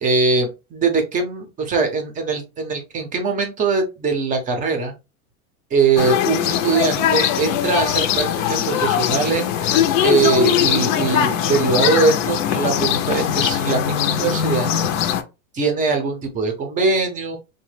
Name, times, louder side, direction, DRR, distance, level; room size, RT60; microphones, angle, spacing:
voice 1, 0.0-4.9 5.7-14.7 15.5-17.4, right 4 dB, 20° right, 5 dB, 0.5 m, -21 dB
sound 1, 6.0-15.2, left 9 dB, 60° left, 0.6 m, -20 dB
3.1 x 2.2 x 3.1 m, 0.27 s
supercardioid pair, 145°, 43 cm